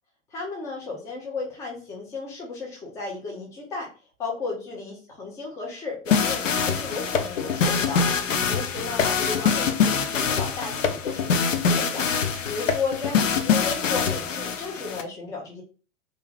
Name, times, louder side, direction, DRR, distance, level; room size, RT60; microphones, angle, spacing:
voice 1, 0.3-3.9 4.2-8.0 8.5-12.1 12.4-15.6, left 4 dB, 10° left, -1 dB, 0.4 m, -34 dB
sound 1, 6.1-15.0, left 6 dB, 70° left, 0.5 m, -24 dB
2.4 x 2.1 x 3.2 m, 0.37 s
figure-of-eight pair, 100°, 39 cm